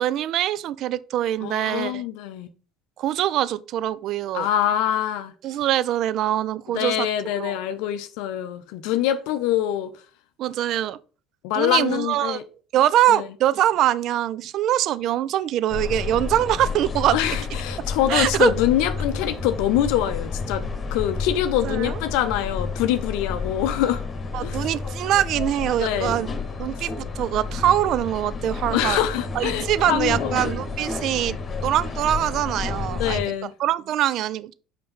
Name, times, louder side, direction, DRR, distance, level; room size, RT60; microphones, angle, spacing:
voice 1, 0.0-2.0 3.0-4.5 5.4-7.1 7.4-7.6 10.4-11.0 11.5-12.4 12.7-17.2 18.1-18.5 21.6-22.0 24.3-26.3 26.6-29.1 29.3-31.4 31.6-33.2 33.6-34.5, right 12 dB, 50° right, 0.3 m, -23 dB
voice 2, 1.4-2.5 4.3-5.3 6.7-9.9 11.4-12.4 13.1-13.3 17.1-20.6 20.9-24.0 24.4-24.6 25.8-26.3 28.7-30.5 32.9-33.5, left 11 dB, 60° left, 0.5 m, -24 dB
sound 1, 15.7-33.2, left 4 dB, 30° left, 1.2 m, -31 dB
5.4 x 5.2 x 5.4 m
figure-of-eight pair, 60°, 0 cm